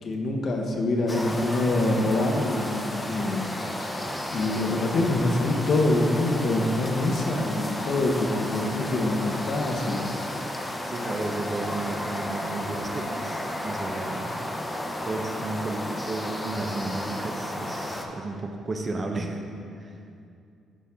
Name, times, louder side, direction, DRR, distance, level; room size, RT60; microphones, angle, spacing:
voice 1, 0.0-3.4 4.3-10.1, left 2 dB, 60° left, 2 dB, 0.9 m, -25 dB
sound 1, 1.1-18.1, left 1 dB, 15° left, 0.8 m, -33 dB
voice 2, 10.6-14.4 15.0-19.4 19.8-20.0, right 2 dB, 35° right, 3 dB, 0.7 m, -33 dB
11.0 x 4.3 x 3.6 m, 2.5 s
cardioid pair, 90°, 0 cm